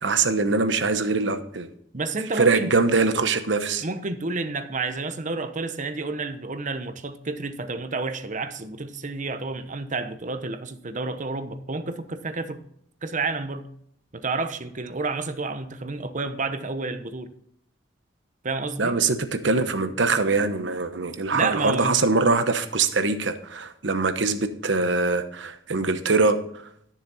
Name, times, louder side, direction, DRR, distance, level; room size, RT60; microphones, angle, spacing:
voice 1, 0.0-1.7 2.4-3.8 18.8-26.4, right 3 dB, 75° right, 1.1 m, -23 dB
voice 2, 1.9-2.7 3.8-12.6 13.0-13.6 14.1-17.3 18.4-19.0 21.3-21.9, right 3 dB, 45° right, 0.9 m, -30 dB
13.0 x 7.2 x 4.2 m
head